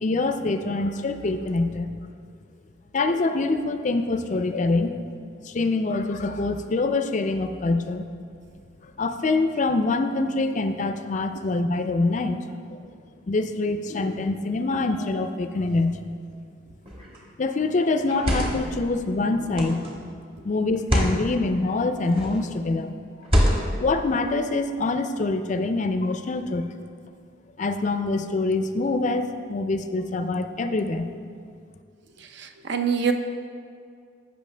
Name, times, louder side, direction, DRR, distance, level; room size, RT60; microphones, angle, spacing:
voice 1, 0.0-1.9 2.9-5.0 5.4-8.0 8.8-12.4 12.7-12.8 13.3-16.0 17.4-20.1 20.4-22.9 23.8-26.7 27.6-31.1, left 3 dB, 40° left, 8 dB, 0.4 m, -25 dB
sound 1, 16.9-17.2 18.0-18.7 19.5-19.9 20.7-21.2 22.1-22.4 23.2-23.9, equal, 30° right, 1.3 m, -24 dB
voice 2, 32.2-33.1, right 7 dB, 60° right, 6 dB, 0.6 m, -26 dB
14.5 x 5.6 x 3.3 m, 2.2 s
head